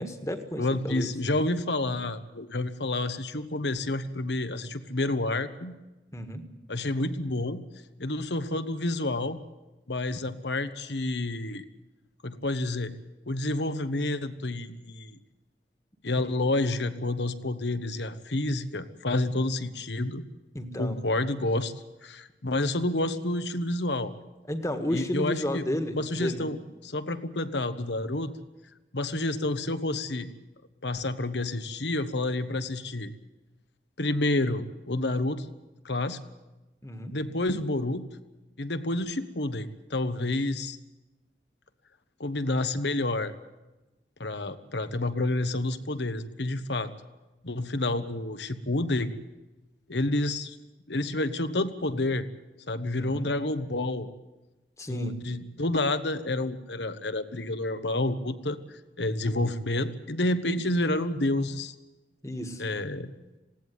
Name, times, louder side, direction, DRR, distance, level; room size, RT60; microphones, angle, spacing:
voice 1, 0.0-1.1 6.1-6.4 16.1-16.2 20.5-21.0 24.5-26.5 36.8-37.1 53.0-53.3 54.8-55.3 62.2-62.7, equal, 15° left, 8 dB, 1.6 m, -32 dB
voice 2, 0.6-5.7 6.7-7.6 8.0-9.4 9.9-11.6 12.2-12.9 13.3-15.2 16.0-20.2 20.8-21.7 22.0-24.1 24.9-26.6 26.8-28.3 28.9-30.3 30.8-33.1 34.0-35.5 35.8-36.2 37.1-38.1 38.6-40.8 42.2-43.3 44.2-46.9 47.4-49.1 49.9-50.6 50.9-52.3 52.7-54.1 54.9-61.7 62.6-63.1, left 2 dB, 80° left, 11 dB, 1.3 m, -29 dB
19.5 x 17.0 x 9.4 m, 1.1 s
head